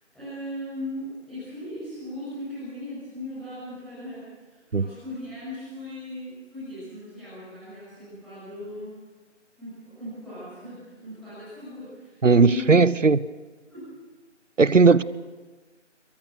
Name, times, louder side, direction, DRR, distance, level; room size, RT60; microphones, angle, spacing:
voice 1, 0.1-8.9 9.6-12.7 13.7-13.9, left 1 dB, ahead, 7.5 m, -38 dB
voice 2, 12.2-13.2 14.6-15.0, right 4 dB, 80° right, 1.0 m, -17 dB
26.0 x 23.0 x 6.6 m
figure-of-eight pair, 160°, 37 cm